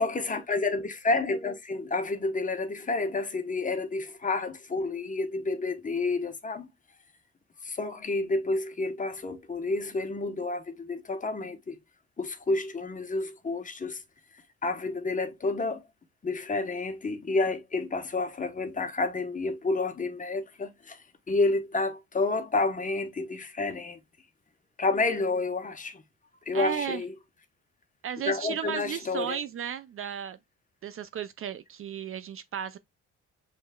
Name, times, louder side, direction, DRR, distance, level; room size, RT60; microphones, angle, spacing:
voice 1, 0.0-6.7 7.6-11.8 12.2-14.0 14.6-15.8 16.2-24.0 24.8-26.0 26.5-27.1 28.3-29.4, left 3 dB, 25° left, 0.9 m, -30 dB
voice 2, 26.5-27.0 28.0-30.4 30.8-32.8, right 8 dB, 45° right, 0.4 m, -34 dB
6.3 x 3.3 x 2.2 m
cardioid pair, 90°, 30 cm